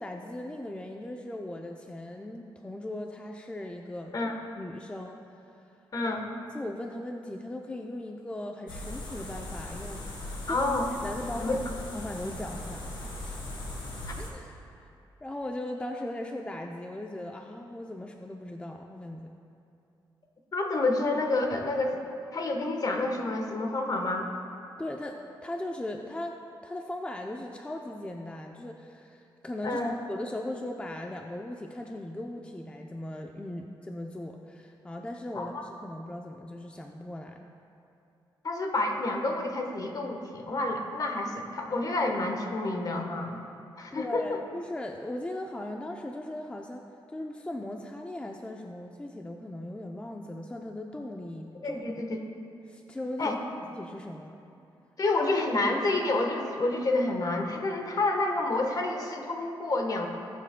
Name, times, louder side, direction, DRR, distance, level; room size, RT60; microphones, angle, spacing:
voice 1, 0.0-4.3 4.5-5.2 6.5-10.7 11.0-11.6 11.9-13.4 14.1-14.9 15.2-19.3 24.8-26.4 26.6-29.8 30.1-37.4 43.9-46.8 47.1-51.9 52.7-54.4, left 1 dB, 15° left, 2 dB, 0.5 m, -38 dB
voice 2, 5.9-6.3 10.5-10.9 11.4-11.6 20.5-22.0 22.3-24.3 29.6-29.9 35.3-35.6 38.4-43.4 43.8-44.4 51.6-52.2 53.2-53.4 55.0-60.1, left 2 dB, 45° left, 3 dB, 1.2 m, -29 dB
sound 1, 8.7-14.3, left 1 dB, 65° left, 2.3 m, -39 dB
20.0 x 7.5 x 2.2 m, 2.6 s
cardioid pair, 95°, 9 cm